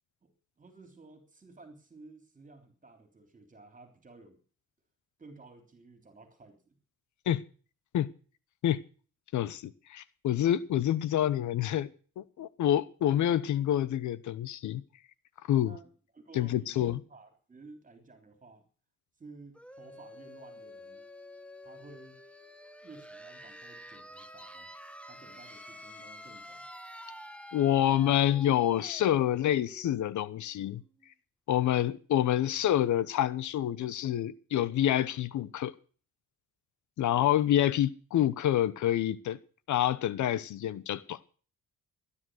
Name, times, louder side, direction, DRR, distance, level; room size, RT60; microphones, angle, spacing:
voice 1, 0.2-4.4 5.2-6.8 15.6-18.6 19.2-21.0 21.6-22.2 22.8-24.7 25.1-26.7, right 3 dB, 25° right, 3.4 m, -54 dB
voice 2, 9.3-11.9 12.2-14.8 15.5-15.7 16.3-17.0 27.5-30.8 31.5-35.7 37.0-39.4 39.7-41.2, left 11 dB, 70° left, 1.0 m, -27 dB
sound 1, 19.5-31.1, left 1 dB, 5° left, 1.7 m, -49 dB
17.0 x 10.5 x 6.4 m
cardioid pair, 90°, 30 cm